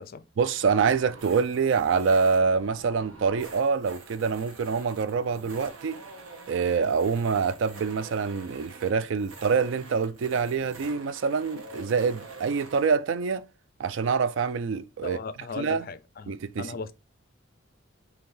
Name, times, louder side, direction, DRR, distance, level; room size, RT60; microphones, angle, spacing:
voice 1, 0.4-6.0 6.5-13.5 13.8-15.2 15.6-15.8 16.3-16.7, right 5 dB, 65° right, 0.3 m, -26 dB
sound 1, 0.6-12.9, right 3 dB, 85° right, 1.1 m, -46 dB
voice 2, 15.0-16.9, left 5 dB, 45° left, 0.4 m, -38 dB
4.2 x 2.8 x 3.7 m
head